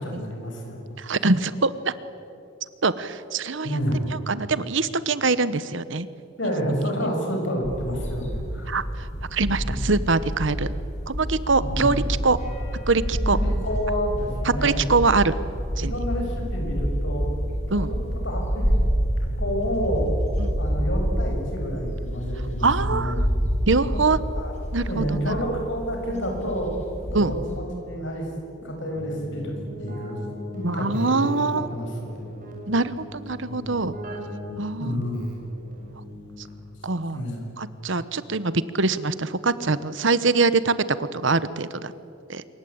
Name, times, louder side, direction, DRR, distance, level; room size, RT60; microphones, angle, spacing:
voice 1, 0.0-0.8 3.6-4.0 6.4-8.8 9.6-9.8 11.6-12.0 13.2-14.9 15.8-17.3 17.7-18.8 19.2-20.1 20.6-23.2 24.3-24.5 24.8-26.7 27.1-28.3 28.6-30.2 30.5-32.2 33.5-33.8 34.8-35.3 37.1-37.5, equal, 65° left, 2 dB, 6.9 m, -29 dB
voice 2, 1.0-1.9 2.8-3.8 4.1-6.1 8.7-10.7 11.1-12.4 12.9-13.4 14.4-15.3 15.8-15.9 17.7-17.9 20.4-20.6 22.6-23.3 23.7-24.2 24.7-25.3 27.1-27.3 30.6-31.7 32.7-33.9 34.6-35.0 36.8-37.2 37.6-41.9 42.3-42.4, right 3 dB, 65° right, 15 dB, 1.1 m, -23 dB
sound 1, 7.6-27.6, equal, 35° left, 4.6 m, -28 dB
Keyboard (musical), 28.9-36.8, left 1 dB, 40° right, 6.6 m, -39 dB
26.5 x 23.0 x 8.7 m, 2.6 s
head